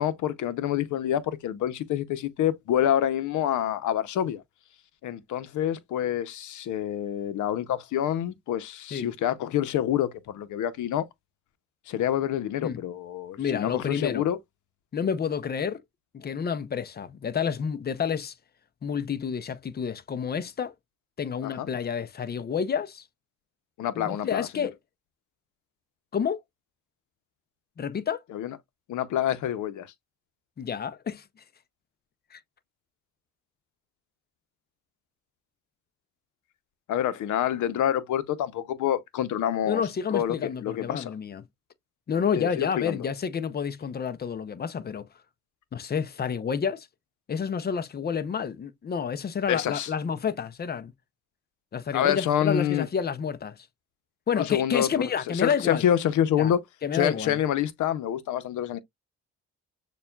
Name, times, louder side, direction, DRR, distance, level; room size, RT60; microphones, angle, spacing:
voice 1, 0.0-4.4 5.0-11.0 11.9-14.4 21.4-21.7 23.8-24.7 28.3-28.6 28.9-29.9 36.9-39.8 40.1-41.1 42.3-43.0 49.5-49.9 51.9-52.9 54.3-56.6 56.9-58.8, left 10 dB, 75° left, 0.7 m, -27 dB
voice 2, 13.4-14.2 14.9-15.8 16.1-18.3 18.8-20.7 21.2-23.0 23.9-24.7 26.1-26.4 27.8-28.2 30.6-31.2 32.3-32.4 39.7-41.5 42.1-45.1 45.7-46.9 47.3-50.9 51.7-53.7 54.3-55.8 56.4-56.5 56.8-57.4, left 7 dB, 35° left, 0.5 m, -29 dB
6.7 x 2.3 x 2.3 m
cardioid pair, 90°, 30 cm